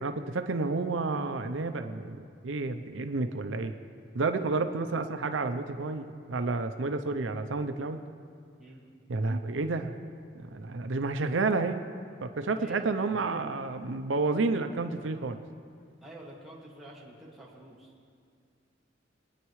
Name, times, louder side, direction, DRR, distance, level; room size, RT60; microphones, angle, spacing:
voice 1, 0.0-3.7 4.1-8.0 9.1-10.0 10.3-11.9 12.2-15.4, right 3 dB, 90° right, 7 dB, 0.6 m, -30 dB
voice 2, 12.5-13.0 16.0-17.9, right 1 dB, ahead, -6 dB, 2.2 m, -48 dB
23.0 x 9.9 x 3.2 m, 2.2 s
head